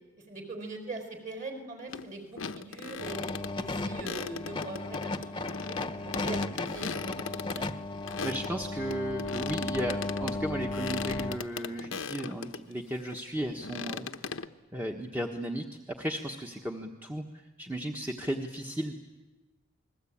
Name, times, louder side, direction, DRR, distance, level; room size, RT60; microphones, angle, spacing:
voice 1, 0.3-3.2 3.5-5.8 6.0-6.9 7.2-7.7, right 2 dB, 40° right, 4 dB, 5.0 m, -42 dB
sound 1, 1.9-2.0 2.3-3.5 3.9-8.5 8.9-12.6 13.1-14.5, left 5 dB, 75° left, 1.0 m, -38 dB
sound 2, 3.0-11.4, left 2 dB, 25° left, 1.1 m, -35 dB
voice 2, 8.2-14.1 14.7-15.6 16.0-18.9, right 1 dB, 10° right, 1 dB, 1.3 m, -35 dB
29.0 x 21.0 x 8.8 m, 1.2 s
head